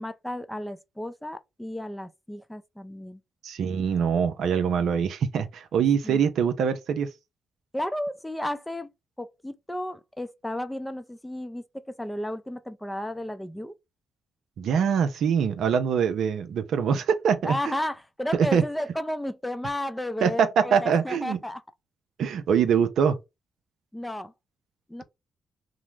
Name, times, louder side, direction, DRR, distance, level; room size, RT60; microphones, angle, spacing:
voice 1, 0.0-3.2 6.0-6.2 7.7-8.9 9.2-11.6 12.0-13.7 17.4-21.6 23.9-24.3 24.9-25.0, left 1 dB, 10° left, 0.5 m, -33 dB
voice 2, 3.4-7.1 14.6-17.7 18.3-18.6 20.2-21.4 22.2-23.2, right 7 dB, 70° right, 0.5 m, -24 dB
2.9 x 2.1 x 3.2 m
hypercardioid pair, 50°, 0 cm